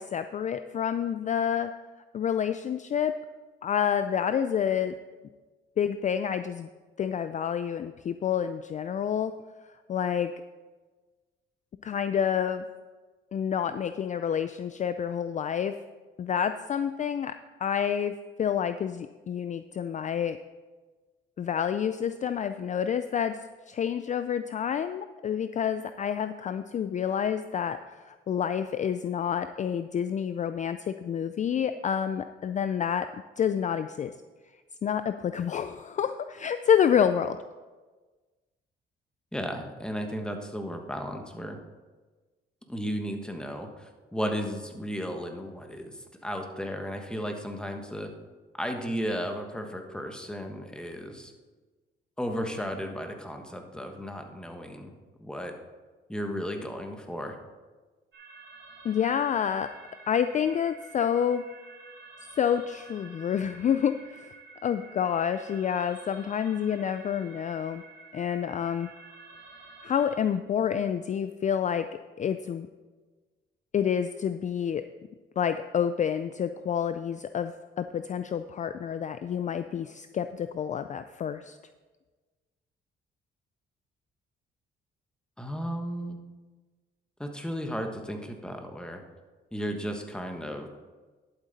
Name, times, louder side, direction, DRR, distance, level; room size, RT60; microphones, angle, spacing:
voice 1, 0.0-1.7 2.1-3.1 3.6-4.9 5.8-6.7 7.0-9.3 9.9-10.3 11.8-12.6 13.3-15.7 16.2-17.3 17.6-18.1 18.4-20.4 21.4-23.4 23.7-33.1 33.4-34.1 34.8-37.4 58.8-59.7 60.1-61.5 62.4-64.3 64.6-67.8 68.1-68.9 69.8-71.9 72.2-72.7 73.7-74.8 75.4-81.6, left 8 dB, 40° left, 10 dB, 0.4 m, -28 dB
voice 2, 39.3-41.6 42.7-48.1 48.5-51.3 52.2-55.5 56.1-57.4 85.4-86.2 87.2-89.0 89.5-90.7, equal, 5° left, 4 dB, 1.3 m, -34 dB
sound 1, 58.1-70.2, right 4 dB, 70° right, 2.9 m, -50 dB
11.5 x 7.8 x 4.1 m, 1.3 s
cardioid pair, 90°, 20 cm